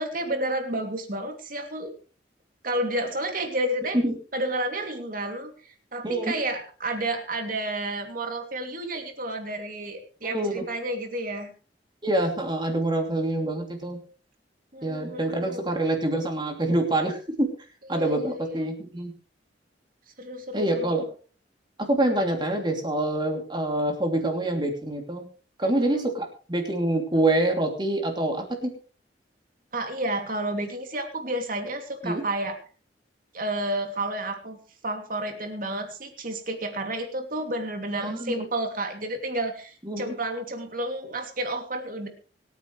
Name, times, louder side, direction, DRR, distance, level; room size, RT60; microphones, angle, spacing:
voice 1, 0.0-1.9 2.6-4.0 4.3-11.5 14.7-15.7 17.9-18.5 20.2-21.0 25.6-26.1 29.7-32.6 33.3-34.6 34.8-42.1, right 1 dB, 50° right, 5 dB, 2.8 m, -31 dB
voice 2, 10.2-10.6 12.0-14.0 14.8-17.5 17.9-19.1 20.5-21.0 21.9-25.3 25.6-28.7 32.0-32.2 38.0-38.4 39.8-40.1, right 1 dB, 25° right, 3 dB, 3.0 m, -26 dB
25.0 x 9.4 x 3.3 m, 0.37 s
head